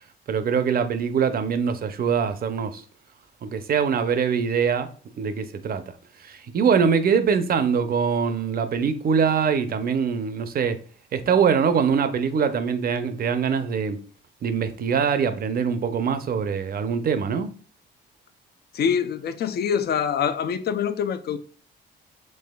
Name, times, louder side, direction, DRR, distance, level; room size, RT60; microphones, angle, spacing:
voice 1, 0.3-2.8 3.4-4.9 5.2-5.8 6.2-10.8 11.1-14.0 14.4-17.5, right 6 dB, 50° right, 0.6 m, -23 dB
voice 2, 18.7-21.4, left 7 dB, 55° left, 0.5 m, -25 dB
5.4 x 3.2 x 2.2 m
cardioid pair, 90°, 20 cm